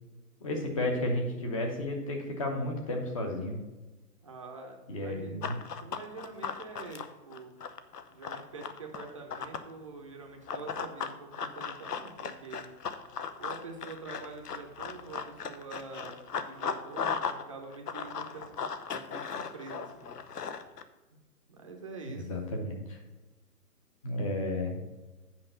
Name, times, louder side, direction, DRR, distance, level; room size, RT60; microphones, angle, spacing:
voice 1, 0.4-3.6 4.9-5.5 22.1-23.0 24.0-24.8, left 1 dB, 20° left, 3 dB, 1.0 m, -32 dB
voice 2, 4.2-7.5 8.1-12.7 13.4-20.2 21.5-22.3, right 4 dB, 20° right, 1 dB, 0.7 m, -46 dB
Run, 5.4-9.7 10.5-17.4 17.7-20.8, left 6 dB, 75° left, 1.0 m, -37 dB
8.8 x 5.3 x 6.4 m, 1.1 s
hypercardioid pair, 165°, 47 cm